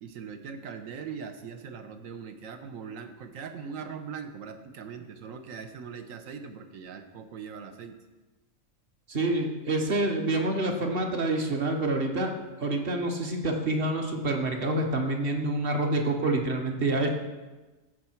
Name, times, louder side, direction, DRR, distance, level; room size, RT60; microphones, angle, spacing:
voice 1, 0.0-8.0, right 6 dB, 80° right, 8 dB, 1.2 m, -41 dB
voice 2, 9.1-12.3 12.6-17.1, right 2 dB, 50° right, 3 dB, 1.1 m, -27 dB
14.0 x 4.6 x 4.4 m, 1.2 s
omnidirectional pair, 1.4 m